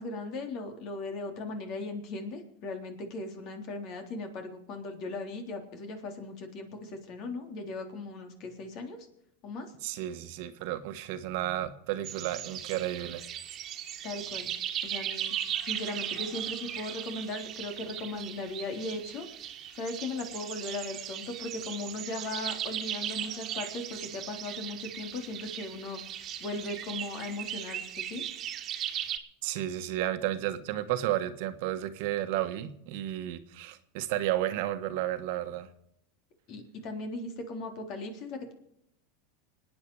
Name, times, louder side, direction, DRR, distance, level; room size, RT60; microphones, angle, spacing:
voice 1, 0.0-9.1 9.4-9.7 14.0-14.5 14.8-15.4 15.6-19.3 19.7-26.0 26.4-28.3 36.5-38.5, left 2 dB, 50° left, 4 dB, 3.5 m, -38 dB
voice 2, 9.8-13.2 29.4-35.7, right 13 dB, 65° right, 9 dB, 1.3 m, -32 dB
sound 1, 12.0-29.2, right 10 dB, 40° right, 1.7 m, -38 dB
26.0 x 9.6 x 4.8 m, 0.77 s
supercardioid pair, 115°, 0 cm